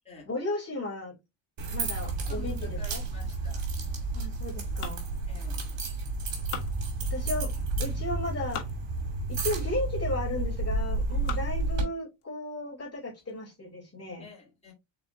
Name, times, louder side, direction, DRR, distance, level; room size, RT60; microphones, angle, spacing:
voice 1, 0.2-1.1 1.7-2.6 2.9-3.0 4.1-5.0 7.1-7.5 7.8-8.6 9.3-14.3, left 2 dB, 30° left, 2.7 m, -34 dB
sound 1, 1.6-11.8, right 3 dB, 90° right, 2.3 m, -31 dB
voice 2, 2.3-3.6 5.3-5.7 14.2-14.7, left 3 dB, 15° left, 2.8 m, -49 dB
sound 2, 4.6-5.9 6.2-7.4 8.0-8.8 9.4-9.5 10.3-10.6 11.0-11.7 12.2-12.3 12.7-12.8 13.2-13.5, left 8 dB, 80° left, 1.6 m, -42 dB
5.0 x 4.0 x 2.6 m
cardioid pair, 135°, 49 cm